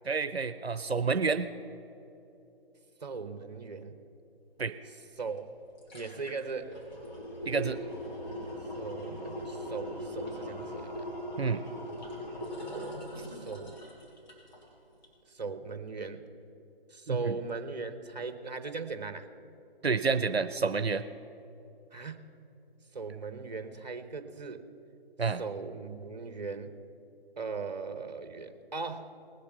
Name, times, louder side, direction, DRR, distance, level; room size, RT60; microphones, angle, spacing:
voice 1, 0.1-1.5 4.6-4.7 7.5-7.8 11.4-11.6 17.1-17.4 19.8-21.0 25.2-25.4, right 5 dB, 85° right, 12 dB, 0.6 m, -29 dB
voice 2, 3.0-4.0 5.2-5.5 5.9-6.8 8.7-11.1 13.2-13.8 15.3-16.2 16.9-19.3 21.9-22.2 22.9-24.7 25.4-26.8 27.4-29.1, right 4 dB, 45° right, 10 dB, 1.0 m, -39 dB
sound 1, 5.2-5.3 5.6-14.7 15.0-15.1, equal, 45° left, 3.8 m, -40 dB
19.5 x 6.7 x 6.8 m, 2.9 s
figure-of-eight pair, 150°, 30 cm